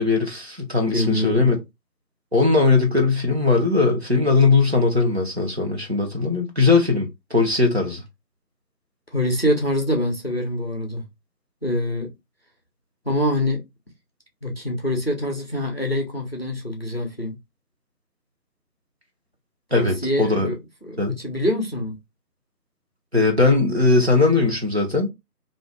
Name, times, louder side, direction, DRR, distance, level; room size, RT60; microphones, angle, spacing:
voice 1, 0.0-1.6 2.3-8.0 19.7-20.5 21.0-21.2 23.1-25.1, left 3 dB, 40° right, 0.8 m, -19 dB
voice 2, 0.9-1.5 9.1-11.0 11.6-12.1 13.0-13.6 14.4-17.4 19.7-20.6 20.8-22.0, left 1 dB, 40° left, 0.6 m, -25 dB
2.6 x 2.2 x 3.5 m
figure-of-eight pair, 165°, 49 cm